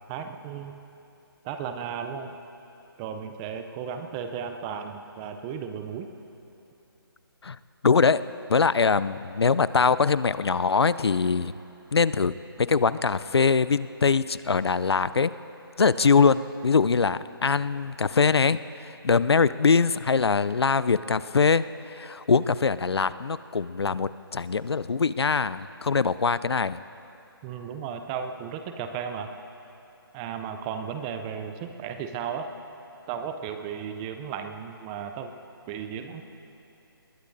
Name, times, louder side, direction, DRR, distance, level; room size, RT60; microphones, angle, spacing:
voice 1, 0.1-0.8 1.4-2.3 3.0-6.1 27.4-29.3 30.1-32.5 33.1-35.3 35.7-36.2, right 7 dB, 15° right, 7 dB, 0.4 m, -35 dB
voice 2, 7.8-8.2 8.5-11.5 11.9-12.3 12.6-15.3 15.8-26.8, left 5 dB, 90° left, 16 dB, 0.4 m, -23 dB
20.5 x 19.0 x 2.6 m, 2.8 s
figure-of-eight pair, 150°, 13 cm